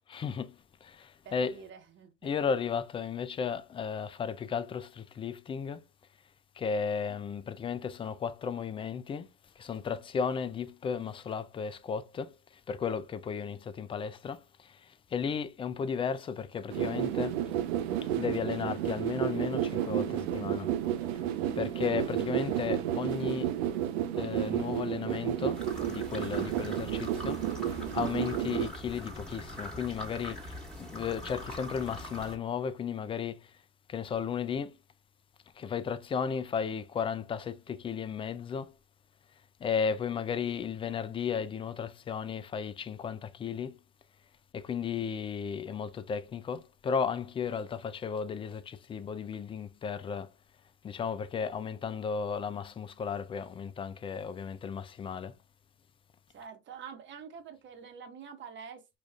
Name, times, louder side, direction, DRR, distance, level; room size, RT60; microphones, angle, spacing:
voice 1, 0.1-1.6 2.2-5.8 6.6-9.3 9.6-17.4 18.0-20.7 21.6-23.5 24.1-25.6 25.9-33.6 33.9-34.8 35.5-38.7 39.6-43.8 44.5-50.3 50.8-55.3, left 6 dB, 20° left, 0.3 m, -34 dB
voice 2, 1.2-2.5 56.3-59.0, right 6 dB, 35° right, 1.1 m, -47 dB
sound 1, 16.7-28.7, right 11 dB, 70° right, 0.6 m, -31 dB
sound 2, 25.5-32.4, left 1 dB, ahead, 1.5 m, -42 dB
5.0 x 2.5 x 2.3 m
hypercardioid pair, 95°, 32 cm